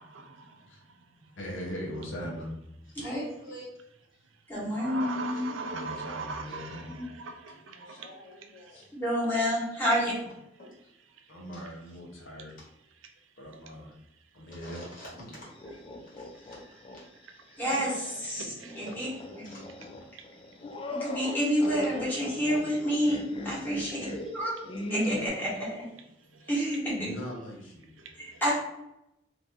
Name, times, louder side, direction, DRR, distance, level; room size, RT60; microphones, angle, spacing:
voice 1, 0.0-1.4 2.9-3.0 4.2-9.0 10.6-11.8 12.2-12.6 12.9-14.5 15.7-18.9 19.4-21.0 21.9-22.1 22.4-22.7 26.1-26.6 27.2-27.3 27.9-28.4, right 4 dB, 85° right, 5 dB, 0.5 m, -44 dB
voice 2, 1.4-2.6 5.6-6.9 7.9-8.0 8.7-8.9 11.3-12.5 13.4-13.9 14.3-14.8 27.0-28.1, equal, 75° left, -1 dB, 0.8 m, -40 dB
voice 3, 3.0-3.7 4.1-4.2 7.8-8.8 10.0-10.1 10.6-10.7 14.5-15.8 16.1-16.6 19.4-19.6 23.8-24.8, equal, 45° left, -6 dB, 1.5 m, -45 dB
voice 4, 4.5-5.6 7.0-7.1 8.9-10.1 17.6-18.4 18.8-19.1 20.9-24.0 24.3-24.5 24.9-25.9 26.5-27.1 28.4-28.5, equal, 10° left, -8 dB, 1.4 m, -28 dB
sound 1, 15.4-17.0 17.4-17.5 18.6-25.3, left 1 dB, 30° left, 0.3 m, -38 dB
2.9 x 2.6 x 3.3 m, 0.84 s
head